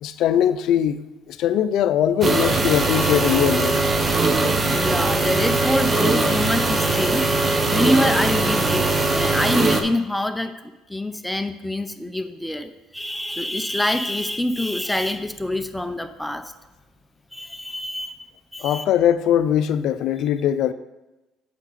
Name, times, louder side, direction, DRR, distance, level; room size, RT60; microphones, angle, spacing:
voice 1, 0.0-1.0 1.3-3.8 18.6-20.7, left 10 dB, 65° left, 0.5 m, -21 dB
sound 1, 2.2-9.8, right 3 dB, 30° right, 0.9 m, -20 dB
voice 2, 4.5-16.5 17.3-18.3 18.5-18.8, left 1 dB, 5° left, 0.6 m, -26 dB
8.1 x 6.6 x 4.1 m
supercardioid pair, 90°, 0 cm